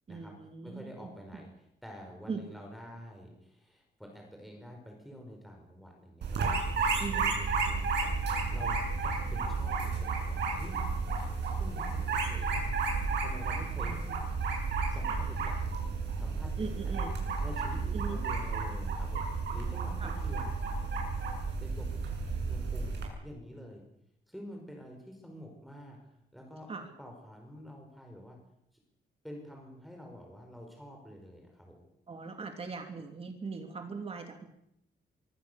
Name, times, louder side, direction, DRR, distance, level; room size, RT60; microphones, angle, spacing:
voice 1, 0.1-1.4 2.3-2.4 7.0-7.3 13.8-14.1 16.6-17.1 17.9-18.2 20.0-20.2 26.7-26.9 32.1-34.5, right 4 dB, 30° right, 4 dB, 3.0 m, -40 dB
voice 2, 0.6-6.6 7.1-8.2 8.5-10.8 11.6-12.8 13.2-14.0 14.9-15.8 16.2-16.9 17.4-19.2 19.5-20.6 21.6-21.9 22.4-23.8 24.3-26.0 26.3-28.4 29.2-31.8, equal, ahead, 1 dB, 5.3 m, -48 dB
sound 1, 6.2-23.0, right 4 dB, 65° right, 7.9 m, -32 dB
25.5 x 24.0 x 7.0 m, 0.76 s
wide cardioid pair, 180°, 19 cm